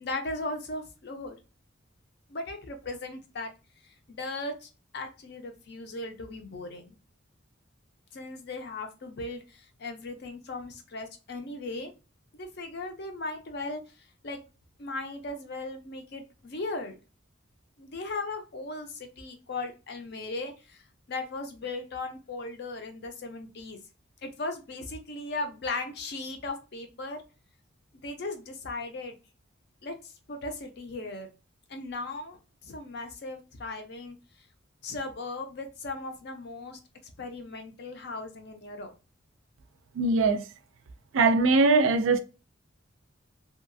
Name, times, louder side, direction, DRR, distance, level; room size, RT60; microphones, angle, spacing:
voice 1, 0.0-1.4 2.3-3.5 4.1-7.0 8.1-11.9 12.4-13.8 14.2-14.4 14.8-17.0 17.8-20.8 21.1-23.8 24.2-27.2 28.0-29.2 29.8-31.3 31.7-32.4 32.6-34.2 34.8-36.8 37.2-38.9, left 2 dB, 55° left, 0.5 m, -37 dB
voice 2, 40.0-40.4 41.1-42.2, right 3 dB, 80° right, 0.4 m, -21 dB
2.8 x 2.4 x 2.5 m
head